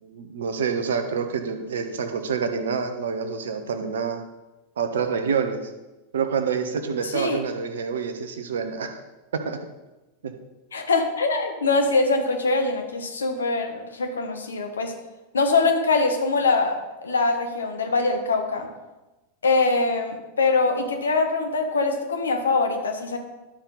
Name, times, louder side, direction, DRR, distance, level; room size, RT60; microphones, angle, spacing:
voice 1, 0.0-4.2 4.8-5.6 6.1-9.0 9.3-9.6, right 6 dB, 65° right, 7 dB, 1.0 m, -27 dB
voice 2, 7.0-7.4 10.7-14.9 15.3-18.7 19.4-23.2, left 3 dB, 70° left, 4 dB, 1.3 m, -23 dB
11.5 x 6.2 x 4.0 m, 1.1 s
figure-of-eight pair, 90°, 0 cm